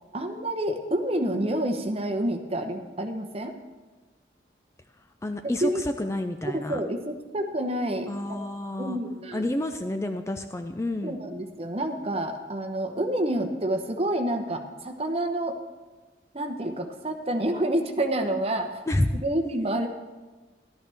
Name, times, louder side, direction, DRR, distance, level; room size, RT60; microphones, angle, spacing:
voice 1, 0.1-3.5 5.6-5.8 6.5-8.4 8.8-9.5 11.0-15.6 16.3-18.7 19.2-19.9, right 1 dB, 35° right, 5 dB, 1.0 m, -28 dB
voice 2, 5.2-6.8 8.1-9.0 9.3-11.2 18.9-19.2, left 1 dB, 15° left, 7 dB, 0.4 m, -29 dB
14.0 x 12.5 x 3.5 m, 1.3 s
head